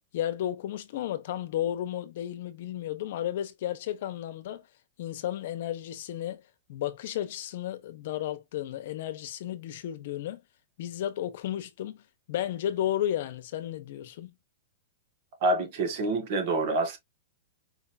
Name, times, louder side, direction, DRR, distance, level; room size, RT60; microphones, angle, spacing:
voice 1, 0.1-4.7 5.0-6.4 6.7-10.4 10.8-14.3, left 11 dB, 55° left, 1.0 m, -33 dB
voice 2, 15.4-17.0, right 2 dB, 45° right, 1.8 m, -27 dB
5.0 x 3.5 x 2.6 m
supercardioid pair, 165°, 0 cm